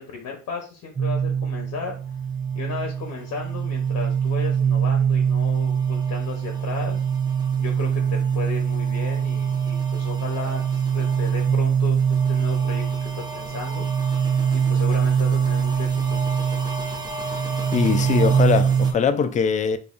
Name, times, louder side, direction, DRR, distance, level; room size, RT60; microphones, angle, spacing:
voice 1, 0.0-1.9 2.5-7.0 7.6-13.9 14.2-16.2, left 5 dB, 70° left, 0.9 m, -35 dB
sound 1, 1.0-18.9, right 7 dB, 15° right, 0.6 m, -23 dB
voice 2, 17.7-19.8, left 6 dB, 25° left, 0.3 m, -21 dB
5.2 x 2.3 x 2.4 m
cardioid pair, 90°, 30 cm